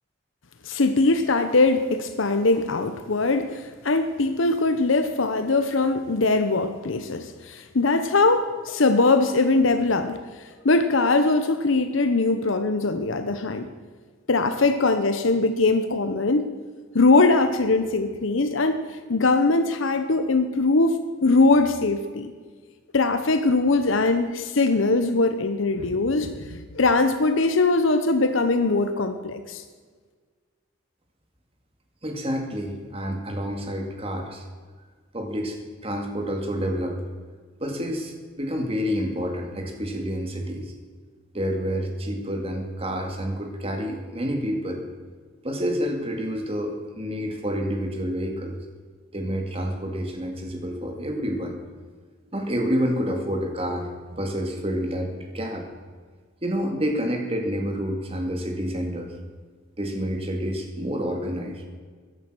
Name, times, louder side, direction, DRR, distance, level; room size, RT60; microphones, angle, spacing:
voice 1, 0.6-10.2 10.6-13.7 14.3-16.5 16.9-18.8 19.1-22.3 22.9-29.6, left 3 dB, 70° left, 8 dB, 0.9 m, -21 dB
voice 2, 32.0-34.4 35.1-35.6 35.8-37.0 37.6-40.7 41.3-44.8 45.4-48.5 49.1-51.6 52.3-55.7 56.4-59.1 59.8-61.6, equal, 30° right, 3 dB, 2.1 m, -28 dB
14.5 x 10.5 x 6.2 m, 1.5 s
head